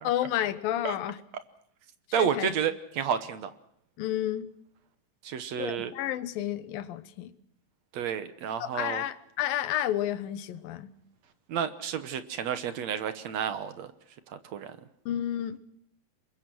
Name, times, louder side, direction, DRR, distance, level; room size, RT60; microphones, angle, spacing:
voice 1, 0.0-1.2 2.2-2.5 4.0-4.5 5.6-7.3 8.6-10.9 15.1-15.6, left 12 dB, 80° left, 2.8 m, -31 dB
voice 2, 2.1-3.5 5.2-5.9 7.9-9.0 11.5-13.9 14.3-14.8, right 8 dB, 65° right, 1.9 m, -31 dB
26.5 x 23.0 x 6.2 m
omnidirectional pair, 4.1 m